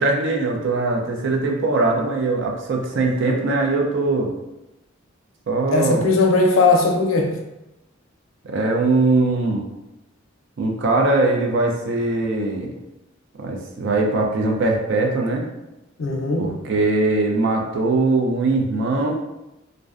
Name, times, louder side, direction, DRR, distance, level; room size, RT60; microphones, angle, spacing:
voice 1, 0.0-4.3 5.5-6.1 8.4-9.6 10.6-12.8 13.4-15.5 16.4-19.1, right 2 dB, 65° right, 1 dB, 0.4 m, -21 dB
voice 2, 5.7-7.3 16.0-16.5, left 3 dB, 85° left, 2 dB, 0.5 m, -18 dB
2.5 x 2.1 x 2.4 m, 0.94 s
head